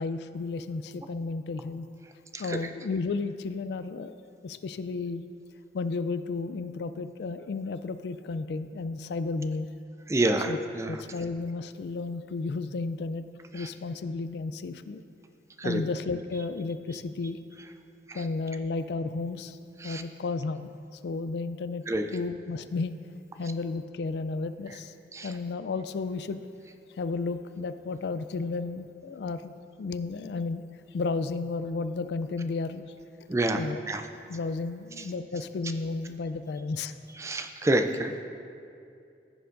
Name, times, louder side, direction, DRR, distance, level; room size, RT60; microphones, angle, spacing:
voice 1, 0.0-1.9 2.4-4.1 4.4-5.3 5.7-9.7 10.5-13.3 13.5-15.0 15.6-17.4 18.1-19.6 19.8-21.8 22.1-23.0 23.4-24.9 25.2-26.4 27.0-29.5 29.8-30.6 30.9-32.8 33.5-33.8 34.3-36.9, left 3 dB, 65° left, 12 dB, 0.3 m, -33 dB
voice 2, 10.1-11.0 13.6-13.7 15.6-15.8 18.1-18.2 19.8-20.0 21.9-22.1 25.1-25.3 33.3-34.0 37.2-38.2, right 2 dB, 15° right, 6 dB, 0.3 m, -28 dB
15.5 x 6.9 x 2.5 m, 2.5 s
head